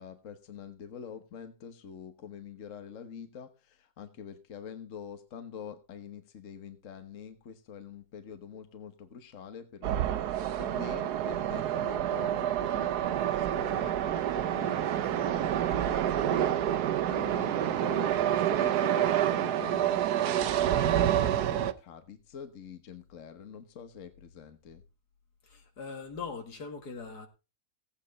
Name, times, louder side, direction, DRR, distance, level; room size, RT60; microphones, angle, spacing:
voice 1, 0.0-10.3 10.6-24.8, left 7 dB, 55° left, 1.5 m, -45 dB
sound 1, 9.8-21.7, right 11 dB, 80° right, 1.3 m, -28 dB
voice 2, 25.4-27.3, left 5 dB, 85° left, 2.5 m, -41 dB
16.5 x 8.7 x 4.0 m
omnidirectional pair, 1.7 m